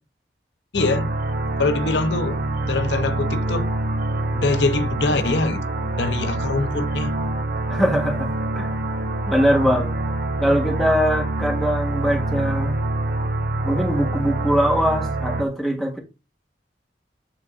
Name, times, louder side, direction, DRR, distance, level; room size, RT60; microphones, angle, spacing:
voice 1, 0.7-1.1 1.6-2.4 2.6-3.7 4.3-5.6 6.0-7.2, left 3 dB, 80° left, 0.7 m, -23 dB
sound 1, 0.7-15.4, right 2 dB, 55° right, 0.8 m, -25 dB
voice 2, 7.7-8.3 8.5-8.7 9.3-9.9 10.4-12.7 13.6-16.0, equal, ahead, 1.4 m, -21 dB
8.6 x 3.9 x 3.6 m
head